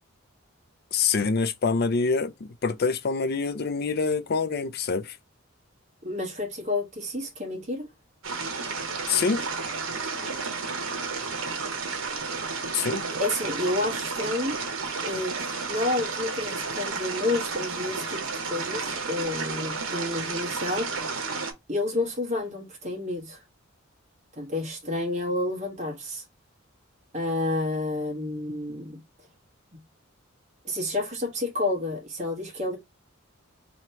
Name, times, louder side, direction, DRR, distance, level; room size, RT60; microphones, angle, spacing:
voice 1, 0.9-5.2 9.1-9.5 12.7-13.0, left 4 dB, 50° left, 0.5 m, -26 dB
voice 2, 6.0-7.9 13.2-14.6 15.0-21.0 21.7-23.4 24.4-26.2 27.1-29.0 30.6-32.8, left 2 dB, 35° right, 1.3 m, -30 dB
sound 1, 8.2-21.5, right 4 dB, 75° right, 1.0 m, -32 dB
3.1 x 2.8 x 4.3 m
head